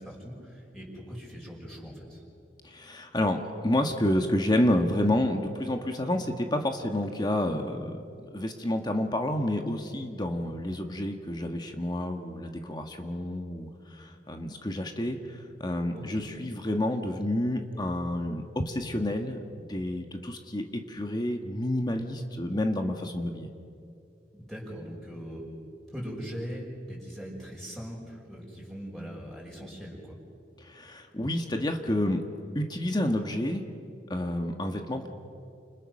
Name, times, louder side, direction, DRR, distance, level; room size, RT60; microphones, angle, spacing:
voice 1, 0.0-2.2 15.9-16.2 24.3-25.4 25.9-30.2, equal, ahead, -4 dB, 5.8 m, -40 dB
voice 2, 2.6-8.0 8.3-23.5 30.6-32.2 32.5-33.6 34.1-35.1, left 1 dB, 25° left, 4 dB, 1.5 m, -29 dB
30.0 x 28.5 x 6.5 m, 2.5 s
head